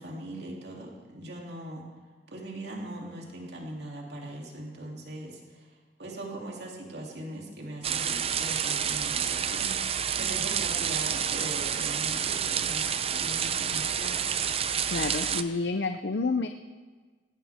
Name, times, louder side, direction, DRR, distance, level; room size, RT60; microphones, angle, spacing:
voice 1, 0.0-1.8 2.3-5.7 6.0-14.3, right 1 dB, 65° right, -1 dB, 3.0 m, -40 dB
sound 1, 7.8-15.4, right 8 dB, 35° right, 0.5 m, -29 dB
voice 2, 14.9-16.5, left 3 dB, 65° left, 7 dB, 0.6 m, -29 dB
18.5 x 16.0 x 3.6 m, 1.4 s
head